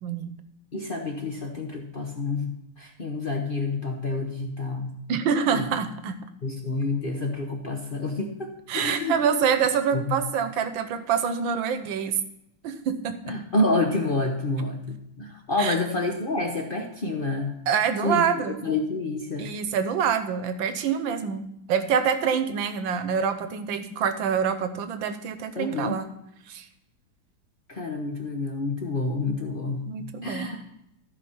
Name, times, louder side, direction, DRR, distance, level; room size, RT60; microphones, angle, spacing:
voice 1, 0.0-0.3 5.1-6.2 8.7-12.2 12.6-13.3 15.6-15.8 17.7-18.6 19.4-21.4 21.7-26.1 26.5-26.7 29.9-30.5, right 7 dB, 65° right, 10 dB, 1.5 m, -26 dB
voice 2, 0.7-5.0 5.5-5.7 6.4-9.2 9.9-10.2 13.3-17.5 18.0-18.2 18.6-19.5 25.6-26.0 27.7-29.9 30.2-30.6, left 2 dB, 70° left, 2 dB, 0.5 m, -28 dB
14.5 x 5.1 x 5.6 m, 0.81 s
omnidirectional pair, 2.4 m